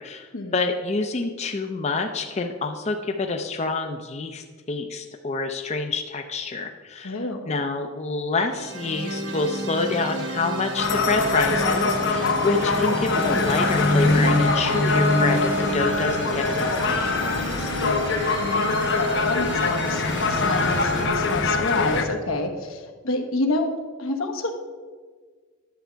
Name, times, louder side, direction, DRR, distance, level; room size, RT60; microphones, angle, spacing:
voice 1, 0.0-17.7, left 3 dB, 30° left, 5 dB, 0.5 m, -27 dB
voice 2, 7.0-7.5 18.4-23.7 24.0-24.5, left 2 dB, 80° left, 5 dB, 1.2 m, -28 dB
sound 1, 8.5-21.1, right 1 dB, 60° right, 1.1 m, -31 dB
sound 2, 10.8-22.1, left 3 dB, 60° left, 0.9 m, -23 dB
10.5 x 7.0 x 4.5 m, 1.5 s
head